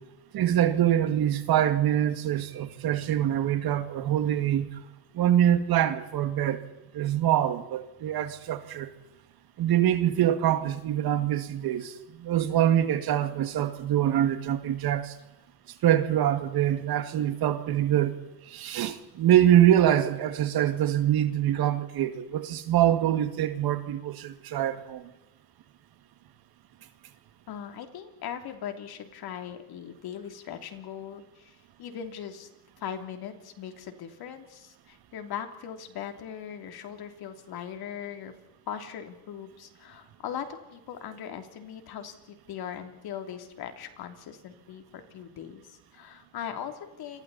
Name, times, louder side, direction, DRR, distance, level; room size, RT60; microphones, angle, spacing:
voice 1, 0.3-4.7 5.1-6.6 6.9-8.9 9.6-11.9 12.2-15.1 15.8-18.1 18.5-25.0, right 11 dB, 55° right, 2.2 m, -24 dB
voice 2, 27.5-32.5 32.8-38.3 38.7-47.2, left 9 dB, 60° left, 3.2 m, -40 dB
29.5 x 23.5 x 4.2 m
cardioid pair, 120°, 43 cm